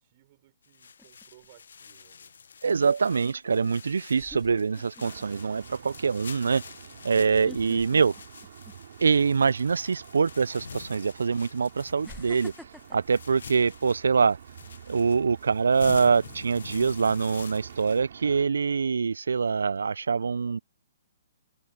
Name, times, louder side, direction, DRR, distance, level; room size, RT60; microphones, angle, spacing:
voice 1, 0.0-2.3, right 16 dB, 45° right, 5.2 m, -59 dB
sound 1, 0.6-18.0, left 6 dB, 75° left, 1.1 m, -46 dB
sound 2, 1.0-1.5 3.4-3.5 4.1-5.2 5.7-5.9 7.2-9.1 9.5-9.7 10.7-10.8 12.0-14.3 14.7-15.0, equal, ahead, 1.1 m, -48 dB
voice 2, 2.6-6.6 7.0-8.1 9.0-12.5 12.9-14.4 14.9-20.6, right 5 dB, 80° right, 0.4 m, -24 dB
sound 3, 5.0-18.5, right 9 dB, 60° right, 4.1 m, -48 dB
hypercardioid pair, 135°, 0 cm